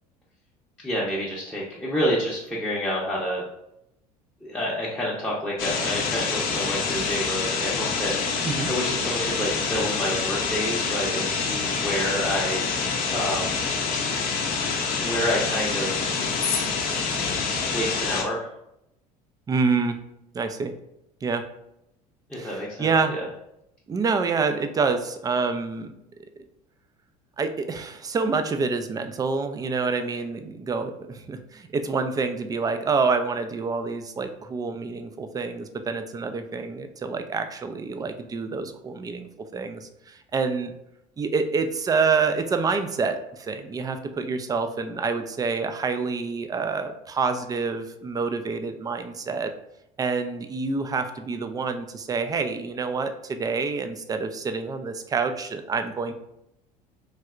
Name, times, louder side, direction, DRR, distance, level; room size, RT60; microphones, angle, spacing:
voice 1, 0.8-3.4 4.4-12.7 13.1-13.6 15.0-16.1 17.5-18.5 22.3-23.3, equal, 5° left, -7 dB, 0.7 m, -29 dB
sound 1, 5.6-18.2, left 5 dB, 45° left, 0.6 m, -26 dB
voice 2, 19.5-20.0 20.3-20.7 21.2-21.4 22.3-23.1 23.9-25.9 27.4-40.7 41.2-49.5 50.0-56.1, right 4 dB, 20° right, 8 dB, 0.4 m, -27 dB
3.3 x 2.7 x 2.4 m, 0.81 s
hypercardioid pair, 70°, 20 cm